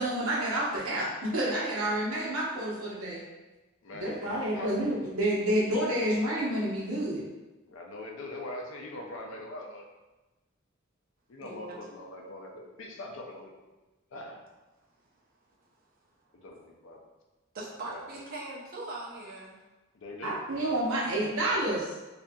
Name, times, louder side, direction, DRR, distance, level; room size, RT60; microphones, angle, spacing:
voice 1, 0.0-3.2 3.9-7.3 20.2-22.0, right 1 dB, 85° right, -6 dB, 0.8 m, -29 dB
voice 2, 3.8-4.2 4.5-4.7 7.7-9.8 11.3-13.5 14.1-14.4 16.4-17.0 17.8-18.1 19.9-20.4, left 1 dB, 65° left, 1 dB, 0.4 m, -42 dB
voice 3, 11.4-11.8 15.5-15.6 17.5-19.6, right 2 dB, 45° right, -4 dB, 0.6 m, -41 dB
2.7 x 2.4 x 2.2 m, 1.1 s
head